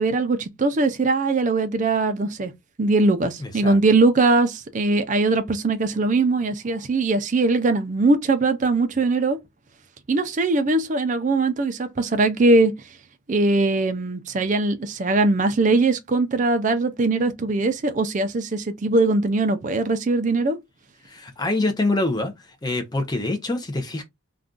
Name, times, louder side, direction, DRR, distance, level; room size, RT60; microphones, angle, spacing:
voice 1, 0.0-2.5 2.8-9.4 10.1-12.7 13.3-20.6, right 3 dB, 35° right, 0.4 m, -21 dB
voice 2, 3.4-3.8 21.0-22.3 22.6-24.0, left 2 dB, 20° left, 0.6 m, -25 dB
2.5 x 2.3 x 3.6 m
head